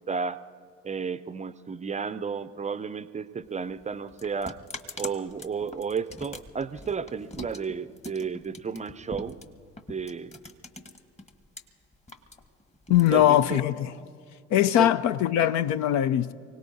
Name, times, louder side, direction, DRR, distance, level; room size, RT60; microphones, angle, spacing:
voice 1, 0.1-0.4 0.8-4.6 5.0-9.4 9.9-10.3 13.1-13.6 14.8-14.9, right 6 dB, 20° right, 0.5 m, -32 dB
sound 1, 3.4-11.6 11.9-13.8, left 2 dB, 20° left, 1.5 m, -43 dB
voice 2, 12.9-13.9 14.5-16.3, left 11 dB, 50° left, 0.6 m, -21 dB
29.5 x 18.0 x 2.7 m
hypercardioid pair, 60°, 36 cm